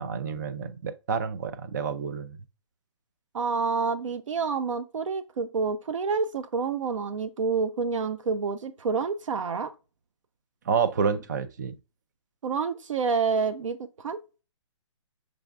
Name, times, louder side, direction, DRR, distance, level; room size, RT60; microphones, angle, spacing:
voice 1, 0.0-2.4 10.7-11.8, right 6 dB, 35° right, 0.4 m, -29 dB
voice 2, 3.3-9.7 12.4-14.2, right 5 dB, 80° right, 0.6 m, -28 dB
6.1 x 3.4 x 2.4 m
hypercardioid pair, 170°, 16 cm